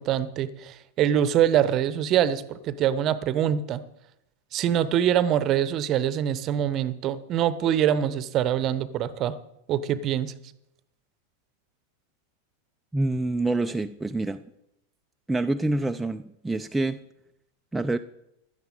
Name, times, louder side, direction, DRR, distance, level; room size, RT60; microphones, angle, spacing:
voice 1, 0.0-3.8 4.5-9.3 9.7-10.3, right 10 dB, 35° right, 17 dB, 0.8 m, -24 dB
voice 2, 12.9-14.4 15.3-17.0 17.7-18.0, right 2 dB, 5° right, 6 dB, 0.4 m, -26 dB
16.0 x 12.0 x 3.8 m, 0.81 s
figure-of-eight pair, 90°, 0 cm